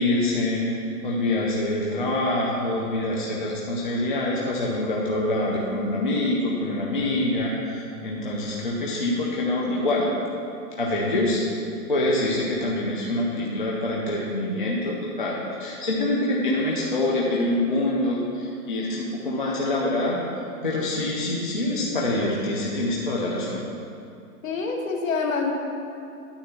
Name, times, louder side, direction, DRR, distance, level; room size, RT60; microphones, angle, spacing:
voice 1, 0.0-10.1 10.8-11.4 11.9-20.2 20.6-23.6, left 1 dB, 35° left, -4 dB, 0.5 m, -25 dB
voice 2, 24.4-25.5, left 4 dB, 55° left, 2 dB, 1.1 m, -26 dB
9.7 x 3.4 x 6.9 m, 2.6 s
hypercardioid pair, 180°, 47 cm